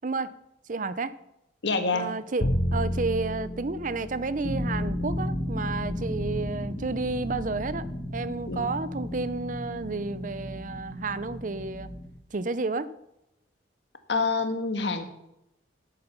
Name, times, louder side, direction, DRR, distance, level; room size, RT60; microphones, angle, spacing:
voice 1, 0.0-0.3 0.7-1.1 1.9-7.9 8.1-11.9 12.3-12.9, right 3 dB, 45° right, 15 dB, 0.6 m, -31 dB
voice 2, 1.6-2.2 8.5-8.7 14.1-15.0, left 3 dB, 75° left, 7 dB, 1.6 m, -27 dB
Bowed string instrument, 2.4-8.5, equal, 50° left, 1.2 m, -33 dB
sound 1, 4.4-12.1, left 1 dB, 35° left, 2.2 m, -34 dB
12.0 x 8.4 x 5.8 m, 0.87 s
head